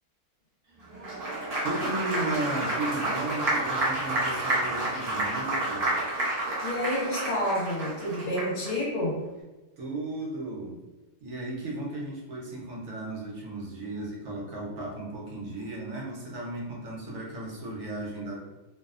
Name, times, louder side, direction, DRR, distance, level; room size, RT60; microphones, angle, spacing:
Applause, 0.9-8.7, right 2 dB, 40° right, 0.5 m, -29 dB
voice 1, 1.6-6.0 9.8-10.8 11.2-18.4, right 2 dB, 85° right, -3 dB, 1.1 m, -35 dB
voice 2, 6.6-9.2, left 1 dB, 60° left, -5 dB, 1.1 m, -29 dB
2.8 x 2.0 x 2.4 m, 1.1 s
omnidirectional pair, 1.4 m